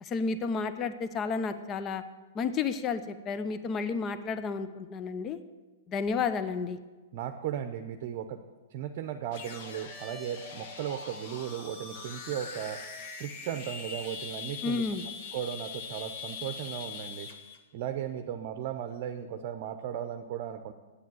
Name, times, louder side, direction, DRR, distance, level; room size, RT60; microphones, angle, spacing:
voice 1, 0.0-2.0 2.3-5.4 5.9-6.8 14.6-15.0, left 5 dB, 25° left, 11 dB, 0.6 m, -31 dB
voice 2, 7.1-8.4 8.7-12.8 13.2-14.9 15.3-17.3 17.7-20.7, right 10 dB, 50° right, 7 dB, 0.7 m, -36 dB
sound 1, 9.3-17.6, left 5 dB, 50° left, 1.5 m, -42 dB
8.4 x 8.3 x 7.8 m, 1.2 s
hypercardioid pair, 125°, 0 cm